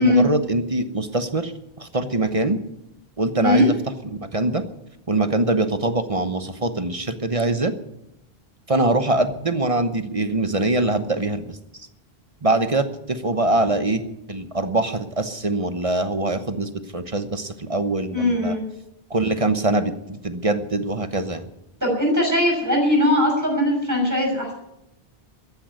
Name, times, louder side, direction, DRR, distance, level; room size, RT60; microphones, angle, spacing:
voice 1, 0.0-1.5 1.8-2.6 3.2-3.7 4.3-4.6 5.1-7.7 8.7-11.6 12.4-14.0 14.3-18.6 19.1-21.5, right 2 dB, 35° right, 10 dB, 1.0 m, -23 dB
voice 2, 18.1-18.6 21.8-24.5, left 1 dB, 15° right, -1 dB, 6.7 m, -20 dB
14.5 x 10.5 x 9.5 m, 0.85 s
omnidirectional pair, 1.0 m